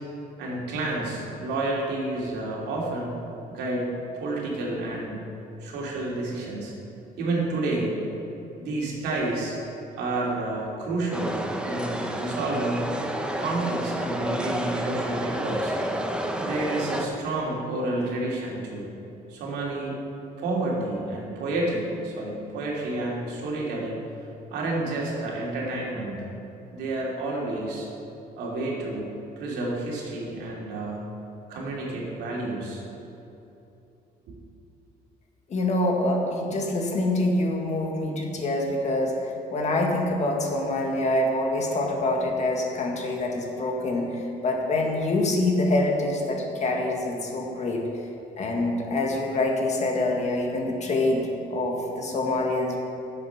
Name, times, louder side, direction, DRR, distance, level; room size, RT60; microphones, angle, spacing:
voice 1, 0.4-3.1 3.5-3.9 4.2-5.3 5.6-6.7 7.2-8.0 8.6-9.6 10.0-11.4 11.6-12.9 13.4-15.7 16.4-18.9 19.3-19.9 20.4-24.0 24.5-26.2 26.7-27.9 28.4-31.1 31.5-32.8, right 2 dB, 80° right, -3 dB, 2.9 m, -30 dB
sound 1, 11.1-17.1, right 1 dB, 5° right, 0.9 m, -30 dB
voice 2, 35.5-47.8 48.4-52.8, left 2 dB, 45° left, 0 dB, 2.0 m, -25 dB
11.0 x 7.7 x 5.8 m, 2.9 s
cardioid pair, 110°, 17 cm